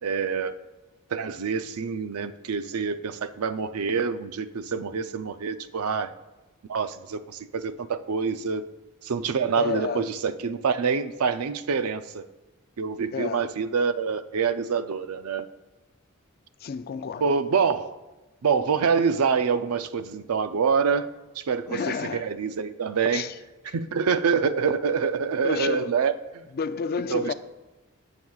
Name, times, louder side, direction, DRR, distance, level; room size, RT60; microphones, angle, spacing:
voice 1, 0.0-0.6 1.1-6.1 6.7-8.6 9.0-12.3 12.8-15.5 17.2-18.0 18.4-21.1 21.4-23.2 23.7-26.4 27.1-27.3, right 6 dB, 80° right, 0.5 m, -26 dB
voice 2, 9.6-10.1 13.1-13.5 16.6-17.3 21.7-22.2 23.1-23.3 23.7-23.8 25.4-26.0 26.5-27.3, left 6 dB, 45° left, 0.4 m, -30 dB
16.5 x 7.2 x 2.4 m
head